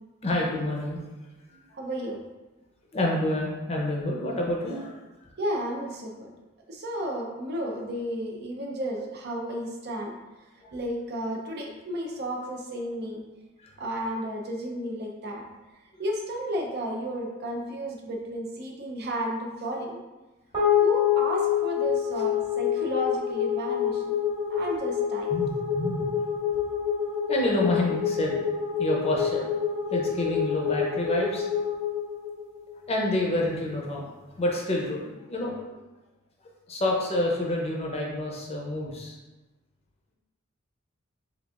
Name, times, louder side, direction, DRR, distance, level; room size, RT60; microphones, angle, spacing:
voice 1, 0.2-1.0 1.5-1.6 2.9-5.0 10.6-10.7 13.6-13.7 25.3-26.1 27.3-28.4 28.8-29.4 29.9-31.5 32.9-34.1 34.4-35.6 36.7-39.2, left 1 dB, 30° left, -2 dB, 0.6 m, -28 dB
voice 2, 1.7-2.2 5.4-6.3 6.7-10.1 10.7-13.2 13.8-15.4 16.0-20.0 20.8-24.1 24.5-25.3, equal, 50° right, 0 dB, 0.5 m, -32 dB
sound 1, 20.5-33.1, left 8 dB, 30° right, 1.5 m, -27 dB
3.9 x 3.4 x 2.4 m, 1.1 s
head